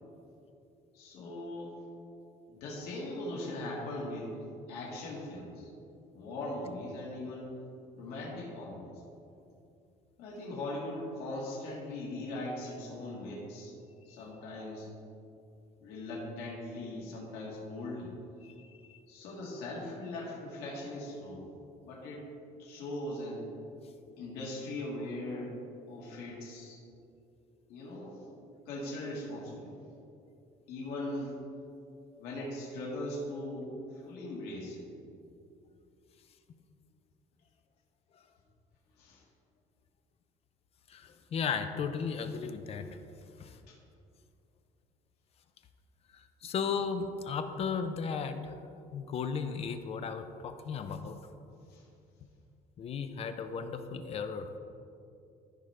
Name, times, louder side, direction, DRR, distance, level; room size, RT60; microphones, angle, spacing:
voice 1, 0.9-1.8 2.5-4.3 4.7-5.7 6.1-7.5 8.0-8.9 10.2-13.7 14.1-14.9 15.8-18.1 19.1-21.5 21.8-22.3 22.6-23.5 24.2-25.5 25.9-26.8 27.7-28.2 28.7-29.8 30.7-31.3 32.2-34.8 39.0-39.2 43.7-43.8 51.7-51.8, left 1 dB, 85° left, -5 dB, 1.8 m, -40 dB
voice 2, 18.4-19.0 40.9-43.0 43.4-43.6 46.1-48.5 48.9-51.2 52.8-54.5, left 6 dB, 40° left, 8 dB, 0.5 m, -35 dB
13.5 x 5.1 x 3.3 m, 2.6 s
cardioid pair, 150°, 16 cm